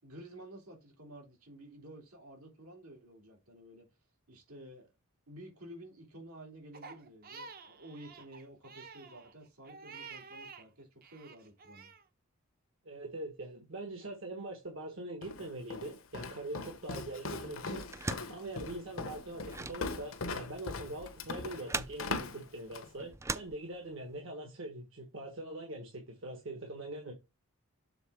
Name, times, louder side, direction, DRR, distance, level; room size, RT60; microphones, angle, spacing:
voice 1, 0.0-3.9 4.3-4.9 5.3-11.9, right 1 dB, 85° right, 3.0 m, -51 dB
Crying sobbing, 6.7-10.7 11.0-12.0, right 5 dB, 45° right, 0.7 m, -50 dB
voice 2, 12.8-27.1, right 2 dB, 65° right, 1.4 m, -43 dB
Walk footsteps, 15.2-23.0, left 3 dB, 70° left, 0.8 m, -40 dB
sound 1, 17.8-24.2, right 3 dB, 15° right, 0.3 m, -42 dB
7.0 x 3.8 x 4.7 m
head